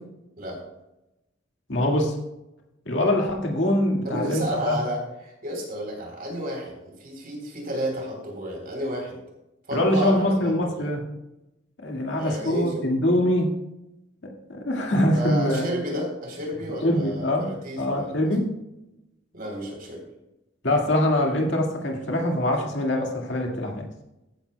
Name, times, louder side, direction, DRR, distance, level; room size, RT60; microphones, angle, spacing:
voice 1, 1.7-2.1 2.9-4.8 9.7-11.0 11.8-13.5 14.2-15.6 16.8-17.5 17.8-18.5 20.6-23.9, left 1 dB, 70° left, 1 dB, 2.0 m, -23 dB
voice 2, 4.0-9.2 9.7-10.9 12.2-12.7 15.1-18.3 19.3-20.0, right 1 dB, 50° right, 1 dB, 3.7 m, -32 dB
14.5 x 9.8 x 2.3 m, 0.91 s
head